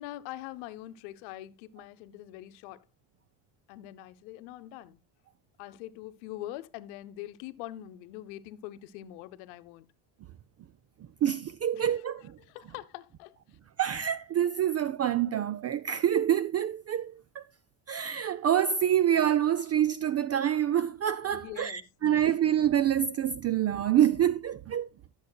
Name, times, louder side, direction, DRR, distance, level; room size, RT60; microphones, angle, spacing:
voice 1, 0.0-2.8 3.7-5.0 5.6-9.9 11.7-11.9 12.4-13.4 21.3-22.3, left 14 dB, 85° left, 0.9 m, -43 dB
voice 2, 11.2-12.3 13.8-17.4 17.9-24.9, right 10 dB, 35° right, 0.4 m, -26 dB
15.5 x 7.1 x 2.2 m
supercardioid pair, 85°, 48 cm